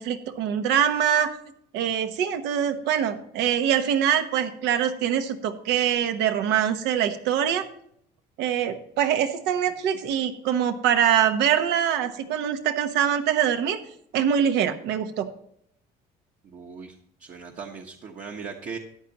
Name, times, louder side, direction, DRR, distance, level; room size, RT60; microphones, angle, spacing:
voice 1, 0.0-1.3 1.7-7.6 8.4-13.8 14.1-15.3, right 9 dB, 85° right, 8 dB, 1.1 m, -24 dB
voice 2, 16.4-16.9 17.2-18.8, right 5 dB, 50° right, 1 dB, 1.1 m, -38 dB
14.0 x 10.0 x 3.0 m, 0.70 s
cardioid pair, 110°, 17 cm